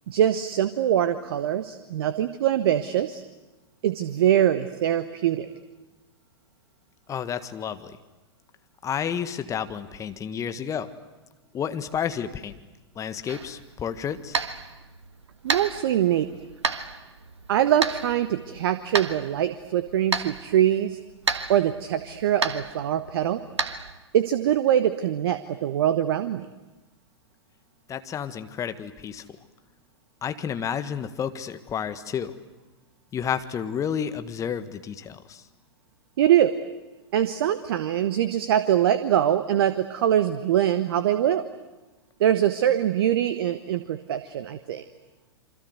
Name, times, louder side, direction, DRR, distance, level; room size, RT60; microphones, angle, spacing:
voice 1, 0.1-3.2 3.8-5.5 15.4-16.2 17.5-21.0 21.5-23.4 24.1-26.5 36.2-36.5 37.1-41.5 42.2-44.8, right 11 dB, 55° right, 11 dB, 1.2 m, -23 dB
voice 2, 7.1-8.0 8.8-10.9 11.5-12.5 12.9-14.4 27.9-29.2 30.2-32.4 33.1-35.5, left 8 dB, 20° left, 10 dB, 1.6 m, -31 dB
sound 1, 13.3-24.0, right 4 dB, 80° right, 1.5 m, -33 dB
27.5 x 25.5 x 8.1 m, 1.1 s
figure-of-eight pair, 100°, 15 cm